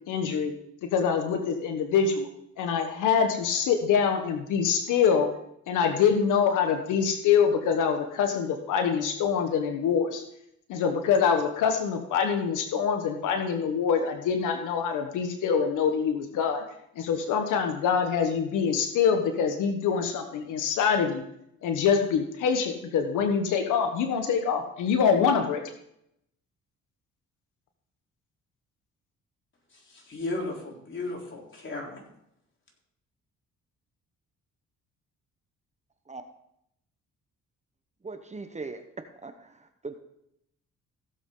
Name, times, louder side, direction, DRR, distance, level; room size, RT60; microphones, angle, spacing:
voice 1, 0.1-0.5 0.9-2.3 2.6-5.3 5.7-10.2 10.7-16.6 16.9-21.2 21.6-25.6, left 6 dB, 85° left, 5 dB, 1.4 m, -25 dB
voice 2, 29.7-32.0, left 2 dB, 40° left, -1 dB, 4.0 m, -35 dB
voice 3, 38.0-38.8 39.2-39.9, right 3 dB, 25° right, 7 dB, 1.1 m, -39 dB
16.0 x 7.7 x 3.9 m, 0.77 s
cardioid pair, 90°, 30 cm